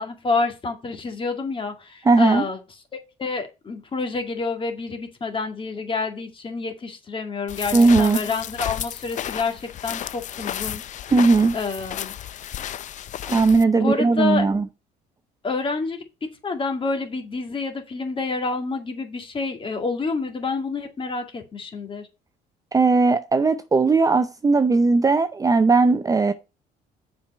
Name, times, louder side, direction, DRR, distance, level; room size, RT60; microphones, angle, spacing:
voice 1, 0.0-2.6 2.9-10.8 11.5-12.2 13.8-14.5 15.4-22.1, left 4 dB, 30° left, 2.1 m, -28 dB
voice 2, 2.0-2.4 7.7-8.2 11.1-11.6 13.2-14.7 22.7-26.3, right 3 dB, 20° right, 0.6 m, -18 dB
sound 1, 7.5-13.6, left 11 dB, 45° left, 0.5 m, -32 dB
7.2 x 4.8 x 5.5 m
cardioid pair, 110°, 17 cm